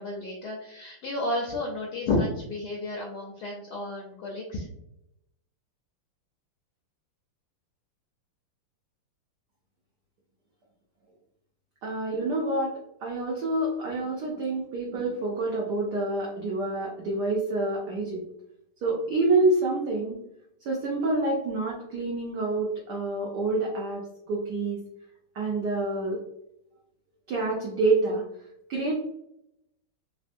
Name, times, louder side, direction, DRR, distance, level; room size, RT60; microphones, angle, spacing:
voice 1, 0.0-4.7, left 2 dB, 70° left, -2 dB, 0.9 m, -31 dB
voice 2, 11.8-12.7 13.0-18.2 18.8-20.2 20.6-24.0 24.3-24.8 25.3-26.2 27.3-28.2 28.7-28.9, right 2 dB, 80° right, -2 dB, 0.9 m, -27 dB
3.4 x 2.2 x 2.5 m, 0.80 s
omnidirectional pair, 2.3 m